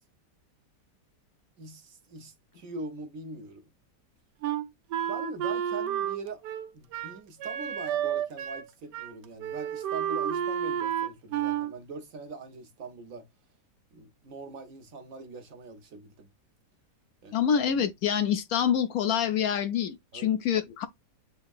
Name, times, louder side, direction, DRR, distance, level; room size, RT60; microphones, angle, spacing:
voice 1, 1.6-3.7 5.0-6.4 6.7-13.3 13.9-16.3 17.2-17.5 20.1-20.3, right 3 dB, 60° right, 1.1 m, -42 dB
Wind instrument woodwind instrument, 4.4-8.7 8.9-9.1 9.4-11.7, right 10 dB, 85° right, 1.3 m, -31 dB
voice 2, 17.3-20.9, left 8 dB, 70° left, 1.0 m, -26 dB
8.0 x 2.8 x 2.3 m
omnidirectional pair, 1.8 m